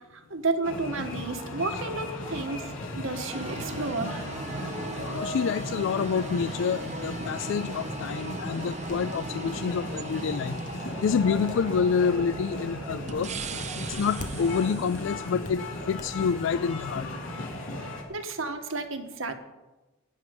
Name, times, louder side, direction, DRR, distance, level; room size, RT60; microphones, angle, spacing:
voice 1, 0.1-4.2 17.8-19.3, right 3 dB, 80° right, 5 dB, 1.5 m, -32 dB
sound 1, 0.6-18.0, left 1 dB, 85° left, 2.8 m, -36 dB
sound 2, 3.3-15.5, right 4 dB, 35° right, 0.7 m, -39 dB
voice 2, 5.0-13.3 13.9-17.1, left 6 dB, 70° left, 15 dB, 0.3 m, -28 dB
sound 3, 8.2-14.6 14.9-16.1, left 2 dB, 40° left, 1.2 m, -47 dB
16.0 x 10.5 x 5.3 m, 1.1 s
head